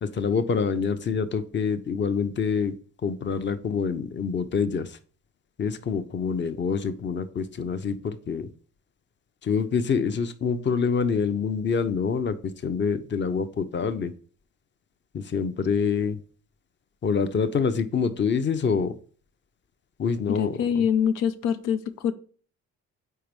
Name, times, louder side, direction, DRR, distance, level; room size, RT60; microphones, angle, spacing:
voice 1, 0.0-2.8 3.0-5.0 5.6-8.5 9.4-14.1 15.1-16.2 17.0-18.9 20.0-20.6, left 5 dB, 40° left, 11 dB, 0.7 m, -26 dB
voice 2, 20.3-22.1, left 8 dB, 85° left, 10 dB, 0.6 m, -25 dB
4.6 x 4.4 x 5.3 m, 0.42 s
cardioid pair, 90°, 30 cm